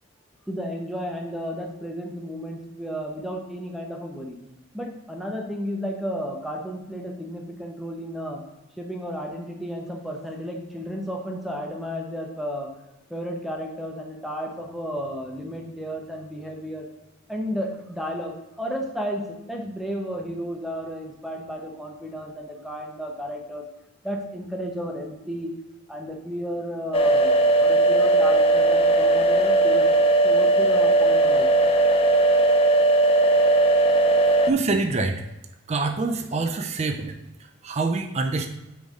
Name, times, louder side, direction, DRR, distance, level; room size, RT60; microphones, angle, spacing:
voice 1, 0.5-4.4 4.7-8.4 8.8-12.7 13.1-16.9 17.3-23.6 24.0-25.5 25.9-30.0 30.2-31.5, equal, ahead, 1 dB, 0.8 m, -33 dB
sound 1, 26.9-34.5, right 2 dB, 30° left, 0.4 m, -18 dB
voice 2, 34.2-35.2 35.7-38.5, right 3 dB, 30° right, 5 dB, 0.4 m, -26 dB
5.1 x 4.0 x 4.8 m, 0.95 s
head